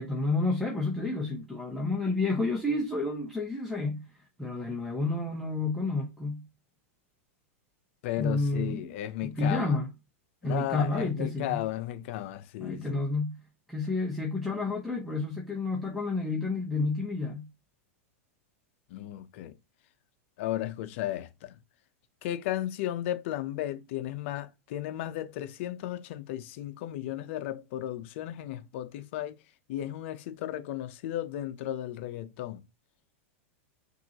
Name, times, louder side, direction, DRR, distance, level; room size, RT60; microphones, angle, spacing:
voice 1, 0.0-4.1 4.4-6.4 8.2-8.9 9.2-9.9 10.4-11.6 12.6-13.4 13.7-17.5, left 3 dB, ahead, 0.8 m, -30 dB
voice 2, 8.0-9.8 10.4-13.0 18.9-19.5 20.4-21.5 22.2-29.3 29.7-32.6, left 13 dB, 60° left, 0.7 m, -34 dB
5.9 x 2.7 x 2.8 m
supercardioid pair, 135°, 8 cm